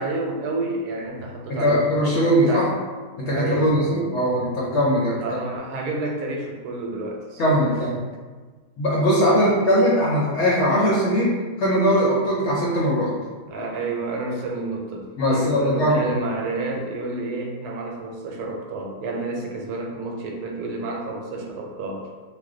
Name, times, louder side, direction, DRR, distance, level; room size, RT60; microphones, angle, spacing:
voice 1, 0.0-2.7 3.2-4.0 5.2-7.6 9.3-9.5 13.5-22.1, right 2 dB, 80° right, 0 dB, 1.1 m, -30 dB
voice 2, 1.5-2.7 3.2-5.4 7.4-7.9 8.8-13.1 15.2-16.1, equal, 65° left, -5 dB, 0.7 m, -20 dB
2.5 x 2.1 x 3.6 m, 1.4 s
omnidirectional pair, 1.6 m